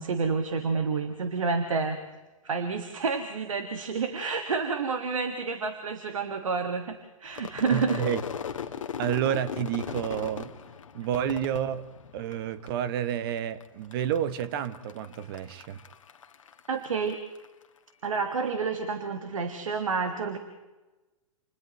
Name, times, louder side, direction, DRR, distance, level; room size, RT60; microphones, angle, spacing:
voice 1, 0.0-2.0 2.4-8.0 16.7-17.2 18.0-20.4, right 5 dB, 65° right, 1.7 m, -29 dB
Crowd / Fireworks, 7.3-12.7 13.0-13.6 13.9-17.5, left 7 dB, 65° left, 1.4 m, -38 dB
voice 2, 7.7-8.2 9.0-10.5 10.9-11.8 12.1-15.8, right 10 dB, 40° right, 1.0 m, -30 dB
30.0 x 28.5 x 3.1 m
figure-of-eight pair, 110°, 18 cm